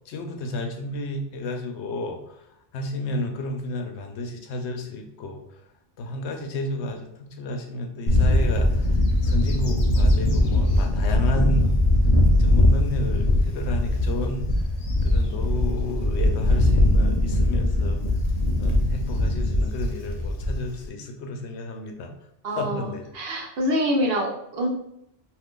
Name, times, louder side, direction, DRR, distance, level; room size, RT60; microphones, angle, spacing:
voice 1, 0.1-2.4 2.7-5.4 6.0-11.8 12.4-14.5 15.0-18.0 18.6-22.1 22.5-23.1, left 1 dB, 85° left, 4 dB, 0.9 m, -32 dB
Bird / Wind, 8.1-20.8, left 1 dB, 50° left, 0.5 m, -21 dB
voice 2, 22.4-24.7, equal, 65° right, -1 dB, 0.9 m, -26 dB
2.6 x 2.4 x 3.6 m, 0.76 s
omnidirectional pair, 1.1 m